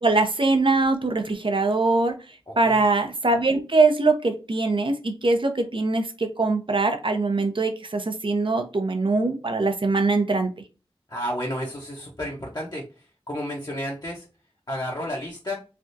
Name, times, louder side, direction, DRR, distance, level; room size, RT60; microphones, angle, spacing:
voice 1, 0.0-2.1 2.6-10.5, right 3 dB, 55° right, 6 dB, 0.7 m, -22 dB
voice 2, 2.5-2.8 11.1-12.8 13.3-14.3 14.7-15.5, equal, 45° left, -3 dB, 0.8 m, -31 dB
3.4 x 2.4 x 2.6 m, 0.32 s
wide cardioid pair, 50°, 10 cm